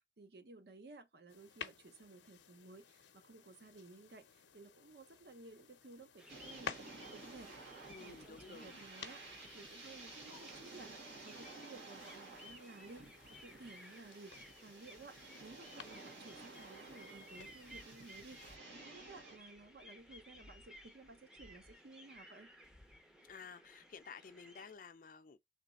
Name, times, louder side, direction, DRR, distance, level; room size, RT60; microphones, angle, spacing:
voice 1, 0.0-9.2 9.5-22.5, right 3 dB, 60° right, 0.6 m, -56 dB
sound 1, 1.3-18.6, left 7 dB, 90° left, 0.6 m, -55 dB
sound 2, 6.2-24.7, equal, 5° right, 0.5 m, -59 dB
sound 3, 6.3-19.4, right 3 dB, 85° right, 1.6 m, -54 dB
voice 2, 7.9-8.8 23.2-25.4, left 5 dB, 50° left, 0.4 m, -53 dB
3.3 x 3.1 x 4.0 m
head